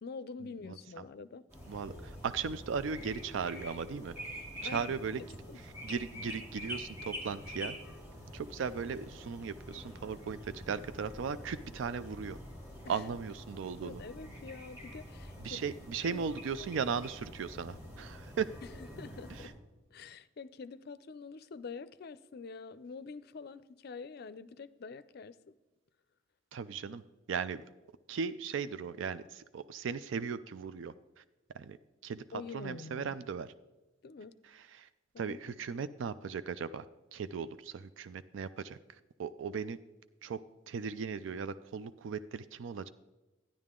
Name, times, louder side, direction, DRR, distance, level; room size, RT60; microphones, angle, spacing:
voice 1, 0.0-1.4 4.6-5.6 12.8-13.0 13.8-15.7 16.0-16.2 18.8-19.5 19.9-25.5 32.3-33.2 34.0-34.4 35.1-35.6, left 4 dB, 55° left, 15 dB, 0.4 m, -46 dB
sound 1, 1.5-19.5, equal, 15° right, 3.2 m, -46 dB
voice 2, 1.7-4.1 4.6-5.2 5.6-7.8 8.3-12.4 12.9-14.0 15.4-18.5 19.4-19.5 26.5-27.0 27.3-27.7 28.1-31.2 31.5-31.8 32.0-32.2 32.5-33.5 34.5-34.9 35.2-36.9 37.1-38.8 39.2-39.8 40.2-40.4 40.7-42.9, right 6 dB, 75° right, 14 dB, 0.4 m, -37 dB
12.5 x 10.5 x 3.7 m, 1.1 s
head